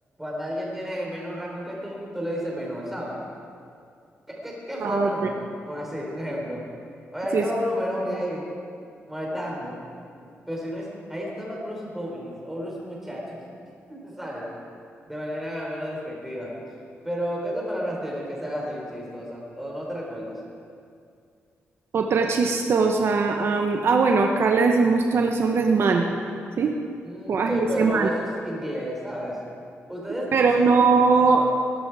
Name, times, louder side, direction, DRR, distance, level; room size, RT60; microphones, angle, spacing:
voice 1, 0.2-3.2 4.3-5.3 5.7-6.7 7.1-8.5 9.1-9.8 10.5-13.4 13.9-14.5 15.1-16.5 17.0-20.4 27.0-29.4 29.9-30.7, equal, 5° right, -3 dB, 4.2 m, -31 dB
voice 2, 21.9-26.1 26.6-26.7 27.3-28.1 30.3-31.4, right 4 dB, 60° right, 3 dB, 1.0 m, -20 dB
19.5 x 11.5 x 4.8 m, 2.4 s
cardioid pair, 110°, 5 cm